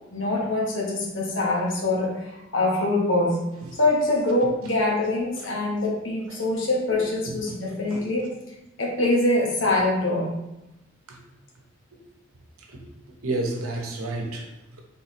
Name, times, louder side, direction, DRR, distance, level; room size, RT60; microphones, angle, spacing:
voice 1, 0.1-3.4 3.7-8.3 8.8-10.4, left 2 dB, 60° left, -1 dB, 1.0 m, -24 dB
voice 2, 7.2-7.5 7.9-8.0 11.1-11.2 11.9-12.0 12.7-12.9 13.2-14.8, right 2 dB, 85° right, 1 dB, 0.9 m, -31 dB
4.2 x 3.6 x 3.0 m, 0.91 s
head